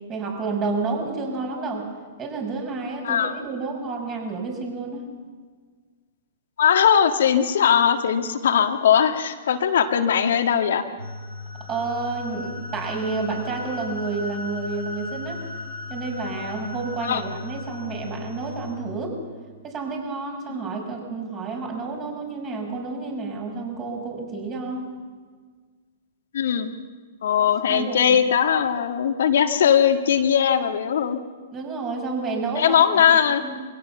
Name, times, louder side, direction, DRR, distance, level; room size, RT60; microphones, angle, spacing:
voice 1, 0.1-1.9 2.2-5.0 11.5-15.4 15.9-19.2 19.6-24.9 27.4-28.0 31.5-33.6, right 4 dB, 30° right, 1 dB, 6.1 m, -30 dB
voice 2, 6.6-10.8 17.0-17.2 26.3-26.7 27.2-31.2 32.5-33.4, left 8 dB, 70° left, 6 dB, 1.7 m, -20 dB
sound 1, 11.0-18.7, left 3 dB, 80° right, 5.4 m, -36 dB
23.5 x 17.0 x 7.2 m, 1.5 s
hypercardioid pair, 120°, 0 cm